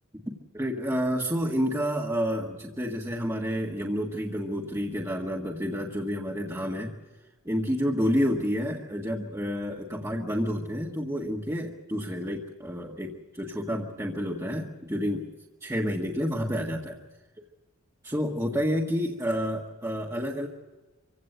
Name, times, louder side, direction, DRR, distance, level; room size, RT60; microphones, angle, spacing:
voice 1, 0.3-6.9 7.4-15.3 15.6-17.0 18.0-20.5, equal, 15° right, -2 dB, 1.6 m, -29 dB
26.0 x 16.5 x 8.0 m, 1.2 s
head